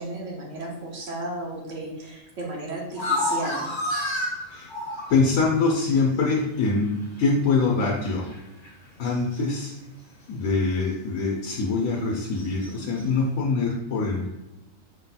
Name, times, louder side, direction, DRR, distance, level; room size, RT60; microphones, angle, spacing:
voice 1, 0.0-3.7, right 2 dB, 70° right, -2 dB, 1.4 m, -33 dB
sound 1, 2.9-5.2 6.1-6.2 8.0-8.4 8.6-8.7 9.0-9.7 12.4-13.0, left 1 dB, 25° left, 0.8 m, -29 dB
voice 2, 5.1-8.3 9.0-9.7 10.3-14.3, left 3 dB, 90° left, -2 dB, 1.1 m, -24 dB
5.1 x 4.1 x 2.2 m, 0.97 s
omnidirectional pair, 1.4 m